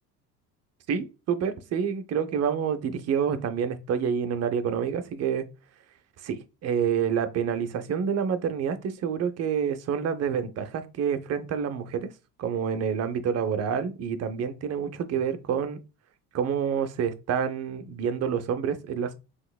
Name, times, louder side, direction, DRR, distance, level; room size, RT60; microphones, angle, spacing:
voice 1, 0.9-5.5 6.2-12.1 12.4-15.8 16.3-19.1, right 7 dB, 35° right, 0.5 m, -28 dB
3.8 x 3.0 x 2.3 m
hypercardioid pair, 70°, 49 cm